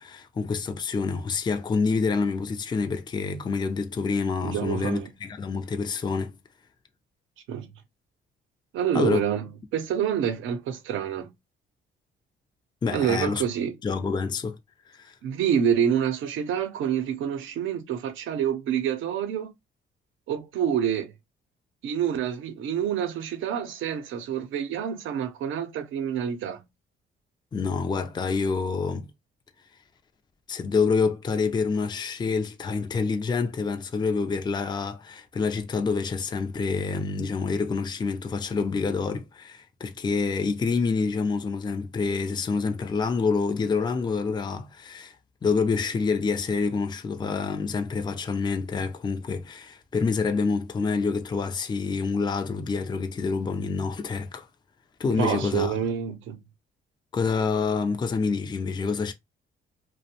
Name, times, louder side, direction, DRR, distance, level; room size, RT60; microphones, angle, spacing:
voice 1, 0.0-6.3 8.9-9.2 12.8-13.4 13.8-14.6 14.9-15.1 27.5-29.1 30.5-45.2 45.4-54.5 55.0-55.7 57.1-59.1, left 4 dB, 20° left, 0.4 m, -27 dB
voice 2, 4.4-5.1 7.5-7.7 8.7-11.3 12.9-13.7 15.2-19.5 20.3-21.1 21.8-26.6 55.2-56.4, right 8 dB, 80° right, 0.6 m, -27 dB
2.5 x 2.1 x 2.7 m
cardioid pair, 90°, 20 cm